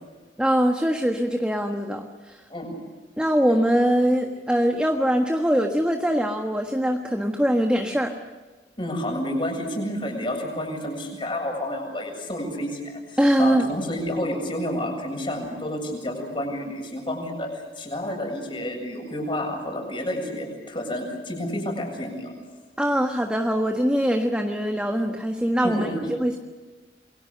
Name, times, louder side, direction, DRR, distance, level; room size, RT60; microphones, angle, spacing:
voice 1, 0.4-2.4 3.2-8.1 13.2-13.7 22.8-26.4, equal, 5° right, 3 dB, 1.4 m, -22 dB
voice 2, 8.8-17.5 17.8-22.3 25.6-26.0, left 1 dB, 30° left, 2 dB, 7.4 m, -30 dB
28.0 x 23.0 x 6.7 m, 1.3 s
head